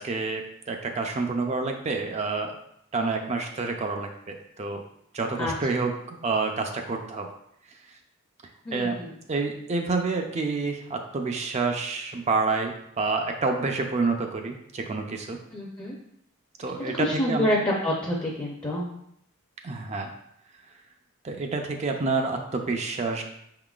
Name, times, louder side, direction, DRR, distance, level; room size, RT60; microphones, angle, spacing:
voice 1, 0.0-2.5 2.9-4.8 5.1-7.3 8.7-9.0 9.3-15.4 16.6-17.5 19.6-20.1 21.2-23.2, right 3 dB, 30° right, 3 dB, 0.4 m, -28 dB
voice 2, 8.7-9.2 15.5-15.9 16.9-18.9, left 1 dB, 20° left, -3 dB, 0.6 m, -27 dB
5.5 x 3.7 x 2.3 m, 0.74 s
head